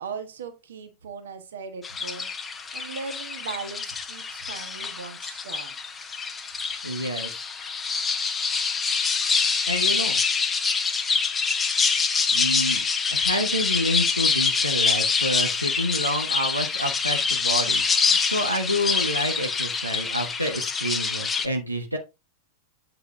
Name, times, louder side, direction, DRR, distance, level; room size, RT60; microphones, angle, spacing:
voice 1, 0.0-2.3 2.7-5.8, right 5 dB, 65° right, 1.4 m, -38 dB
sound 1, 1.8-21.5, left 5 dB, 15° left, 1.0 m, -25 dB
voice 2, 6.8-7.4 9.7-10.2 12.3-12.8 13.1-22.0, equal, 90° right, 1.2 m, -28 dB
8.0 x 4.7 x 3.3 m
figure-of-eight pair, 90°, 0 cm